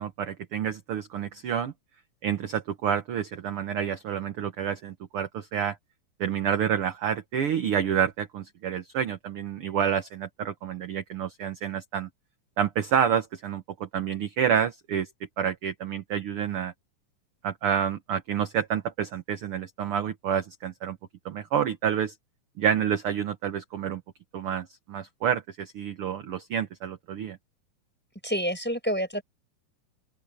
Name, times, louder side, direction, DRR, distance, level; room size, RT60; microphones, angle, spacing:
voice 1, 0.0-1.7 2.2-5.8 6.2-12.1 12.6-15.1 15.4-16.7 17.4-21.0 21.2-22.1 22.6-24.0 24.3-27.4, right 8 dB, 60° right, 1.6 m, -28 dB
voice 2, 28.2-29.2, equal, 5° left, 4.4 m, -28 dB
open air
omnidirectional pair, 3.7 m